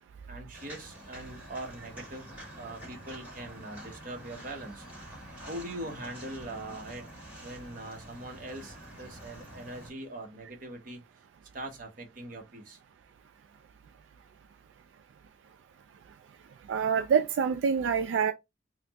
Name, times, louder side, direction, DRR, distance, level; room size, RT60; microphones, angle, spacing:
voice 1, 0.3-4.9 5.5-7.1 7.4-11.0 11.5-12.8, right 1 dB, 45° right, 0.8 m, -42 dB
Walk footsteps, 0.5-9.9, right 1 dB, 10° right, 1.7 m, -47 dB
voice 2, 16.7-18.3, right 6 dB, 80° right, 0.3 m, -26 dB
4.0 x 2.0 x 2.8 m
head